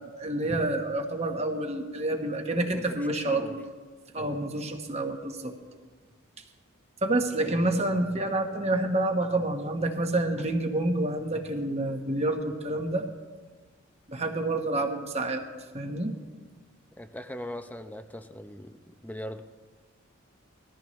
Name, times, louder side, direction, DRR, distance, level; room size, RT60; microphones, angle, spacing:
voice 1, 0.0-3.6 4.1-5.5 7.0-13.0 14.1-15.4 15.7-16.1, right 2 dB, 30° right, 4 dB, 1.2 m, -28 dB
voice 2, 2.7-3.6 4.2-4.4 7.4-7.6 17.0-18.8 19.0-19.4, left 1 dB, 10° left, 8 dB, 0.6 m, -40 dB
20.5 x 14.0 x 3.2 m, 1.4 s
head